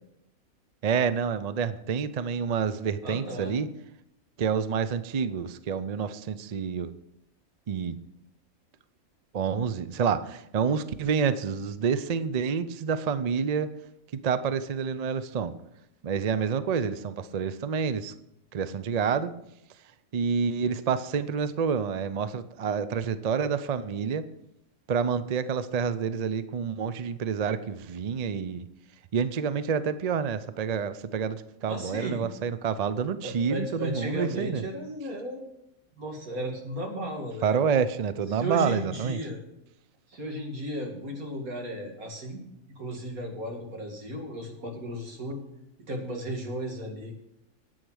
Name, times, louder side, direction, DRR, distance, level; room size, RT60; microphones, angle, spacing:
voice 1, 0.8-3.7 4.4-6.9 7.7-8.0 9.3-13.7 14.2-15.5 16.0-18.1 18.5-19.3 20.1-24.2 24.9-28.6 29.1-34.6 37.4-39.2, right 6 dB, 60° right, 13 dB, 0.4 m, -28 dB
voice 2, 3.0-3.5 31.7-32.2 33.2-35.4 36.0-37.6 38.3-39.4 40.1-42.4 42.8-45.4 45.9-47.2, right 1 dB, 75° right, 1 dB, 2.7 m, -35 dB
10.0 x 8.7 x 6.3 m, 0.82 s
omnidirectional pair, 1.5 m